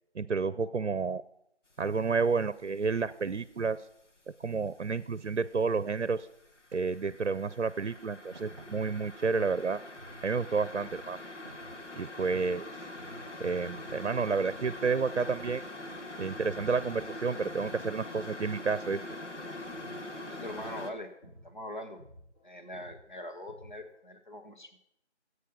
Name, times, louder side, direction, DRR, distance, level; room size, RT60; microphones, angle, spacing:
voice 1, 0.1-1.2 1.8-3.8 4.4-6.3 6.7-9.8 10.2-11.2 12.0-12.7 13.4-15.6 16.2-19.0, right 5 dB, 75° right, 16 dB, 0.7 m, -30 dB
sound 1, 1.9-2.2 2.6-4.2 4.5-20.9, left 1 dB, 85° left, 1.7 m, -44 dB
Thump thud, 6.7-6.9 8.3-9.4 9.7-10.7 11.1-12.6 13.1-13.4 13.6-14.0 15.4-16.5, right 2 dB, 25° right, 1.5 m, -55 dB
sound 2, 8.5-16.0 16.3-24.0, equal, 25° left, 2.4 m, -54 dB
voice 2, 20.3-21.1 21.4-22.0 22.4-24.8, left 1 dB, 40° left, 5 dB, 1.3 m, -42 dB
16.0 x 8.4 x 5.3 m, 0.76 s
figure-of-eight pair, 175°, 35 cm